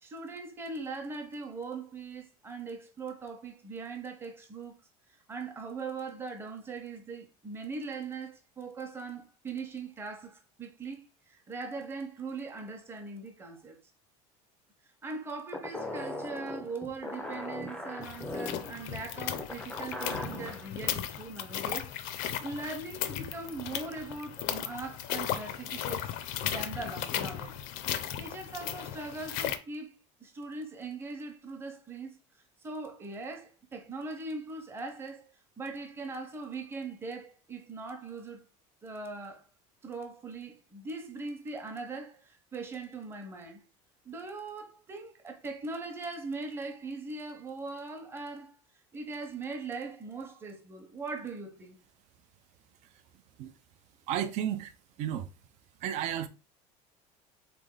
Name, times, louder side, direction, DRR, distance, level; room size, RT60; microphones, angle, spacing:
voice 1, 0.0-4.8 5.3-13.8 15.0-26.1 26.4-27.5 27.9-29.9 30.2-32.1 32.6-35.3 35.6-38.4 38.8-39.5 39.8-43.6 44.0-48.6 48.9-51.8, right 3 dB, 15° right, 0.9 m, -40 dB
sound 1, 15.5-20.7, left 1 dB, 5° left, 0.5 m, -39 dB
sound 2, 18.0-29.6, left 10 dB, 60° left, 0.6 m, -36 dB
voice 2, 54.1-54.7 55.0-55.3 55.8-56.3, right 10 dB, 50° right, 0.5 m, -32 dB
3.9 x 3.4 x 3.9 m
cardioid pair, 160°, 16 cm